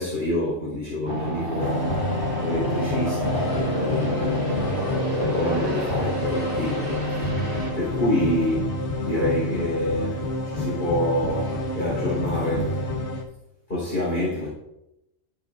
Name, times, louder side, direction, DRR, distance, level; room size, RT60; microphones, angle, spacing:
voice 1, 0.0-2.0 2.4-6.9 7.7-12.8 13.7-14.5, left 1 dB, 55° left, 4.2 m, -27 dB
sound 1, 1.1-7.7, equal, 40° right, 2.6 m, -29 dB
sound 2, 1.6-13.2, left 2 dB, 75° left, 1.5 m, -28 dB
14.0 x 7.6 x 2.6 m
omnidirectional pair, 1.2 m